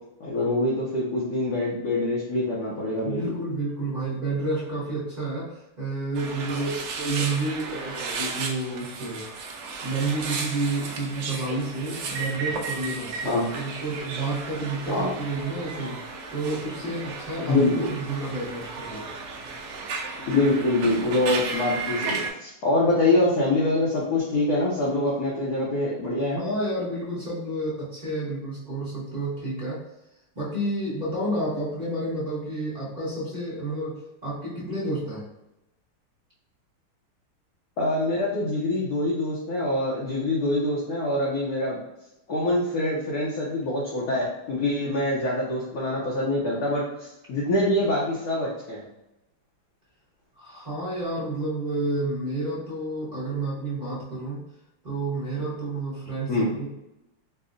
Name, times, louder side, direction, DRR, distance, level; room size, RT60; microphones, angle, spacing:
voice 1, 0.2-3.3 13.2-13.5 14.9-15.1 17.4-17.9 20.2-26.4 37.8-41.8 42.3-48.8 56.3-56.5, left 2 dB, 65° left, -5 dB, 1.0 m, -25 dB
voice 2, 3.0-9.3 9.8-16.0 16.3-19.1 26.4-29.8 30.3-35.2 50.4-54.4 54.8-56.7, right 2 dB, 40° right, -8 dB, 0.6 m, -30 dB
sound 1, 6.1-22.3, right 4 dB, 70° right, 1.1 m, -34 dB
5.2 x 2.1 x 2.5 m, 0.92 s
omnidirectional pair, 2.4 m